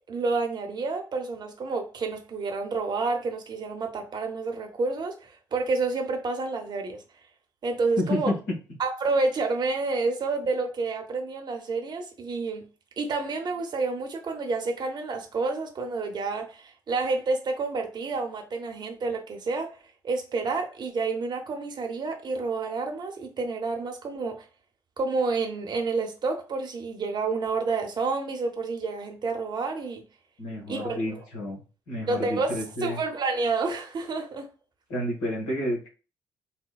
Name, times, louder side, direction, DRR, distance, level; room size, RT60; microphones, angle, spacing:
voice 1, 0.1-7.0 7.6-8.3 8.8-12.7 13.0-19.8 20.0-24.4 25.0-30.0 30.7-31.2 32.1-34.5, right 3 dB, 45° right, 0.8 m, -29 dB
voice 2, 8.0-8.3 30.4-31.6 31.9-33.0 34.9-35.9, left 1 dB, 75° left, 1.2 m, -30 dB
4.2 x 2.1 x 2.2 m
hypercardioid pair, 45°, 10 cm